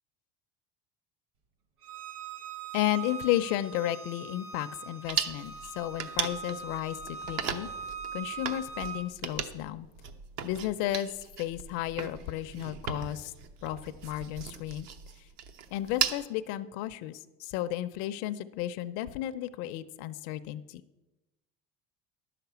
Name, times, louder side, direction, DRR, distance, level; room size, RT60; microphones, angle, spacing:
Bowed string instrument, 1.8-9.1, right 5 dB, 50° right, 1.3 m, -41 dB
voice 1, 2.7-7.7 8.1-9.9 10.4-13.3 13.6-14.9 15.7-20.8, left 14 dB, 80° left, 9 dB, 0.6 m, -33 dB
sound 1, 5.1-16.2, right 8 dB, 65° right, 1.0 m, -37 dB
11.0 x 5.9 x 8.0 m, 1.0 s
cardioid pair, 150°, 29 cm